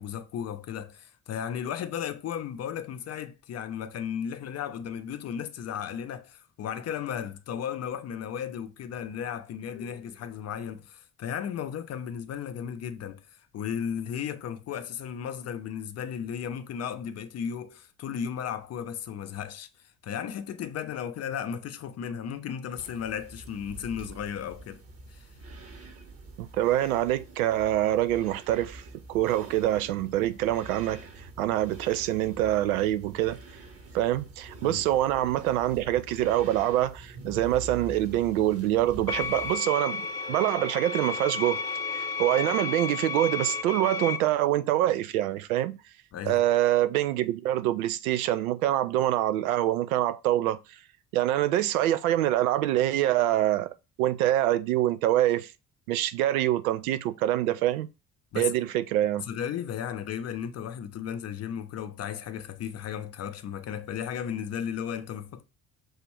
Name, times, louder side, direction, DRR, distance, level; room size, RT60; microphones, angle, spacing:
voice 1, 0.0-24.8 25.1-25.3 34.6-34.8 46.1-46.4 58.3-58.5 59.2-65.4, left 8 dB, 35° left, 0.6 m, -35 dB
sound 1, 22.8-39.6, right 2 dB, 35° right, 1.1 m, -46 dB
voice 2, 26.4-28.8 29.1-31.0 31.4-33.4 33.9-40.0 40.3-41.6 41.9-45.8 46.3-50.6 51.1-55.5 55.9-57.9 58.4-59.3, right 13 dB, 75° right, 0.5 m, -25 dB
sound 2, 39.1-44.2, left 5 dB, 75° left, 0.7 m, -32 dB
6.3 x 2.5 x 3.2 m
figure-of-eight pair, 50°, 43 cm